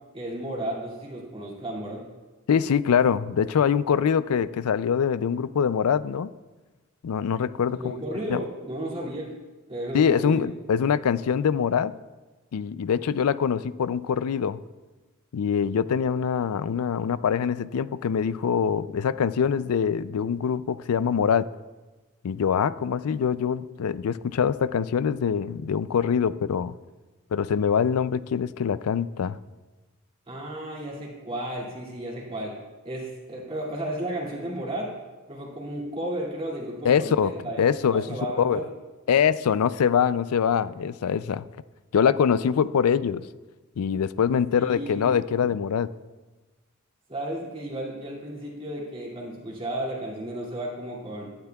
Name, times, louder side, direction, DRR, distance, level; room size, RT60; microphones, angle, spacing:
voice 1, 0.1-2.0 7.7-9.3 9.7-10.4 30.3-32.6 32.8-34.9 35.3-38.7 44.5-45.0 45.4-45.5 47.1-51.3, right 1 dB, 25° right, -4 dB, 2.3 m, -33 dB
voice 2, 2.5-6.3 7.0-7.9 8.3-8.4 9.9-11.9 12.5-14.6 15.3-21.5 22.2-26.7 27.3-29.4 36.8-37.3 37.6-38.1 38.4-38.6 39.1-41.5 41.9-43.2 43.8-45.9, left 7 dB, 75° left, 16 dB, 0.4 m, -24 dB
17.5 x 11.5 x 2.3 m, 1.2 s
head